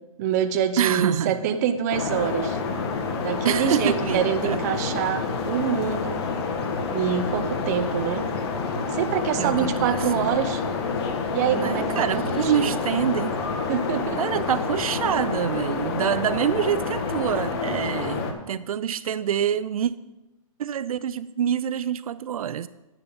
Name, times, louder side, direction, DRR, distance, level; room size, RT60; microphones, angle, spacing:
voice 1, 0.2-2.6 3.2-6.2 6.9-8.3 8.9-10.6 11.3-12.8 13.7-14.2, right 8 dB, 30° right, 9 dB, 0.6 m, -25 dB
voice 2, 0.8-1.5 3.4-4.6 9.4-10.3 11.5-13.4 14.2-19.9 20.6-22.7, right 9 dB, 75° right, 16 dB, 0.4 m, -26 dB
sound 1, 1.9-18.3, left 4 dB, 45° left, 1.3 m, -28 dB
10.5 x 9.8 x 4.0 m, 1.0 s
hypercardioid pair, 160°, 18 cm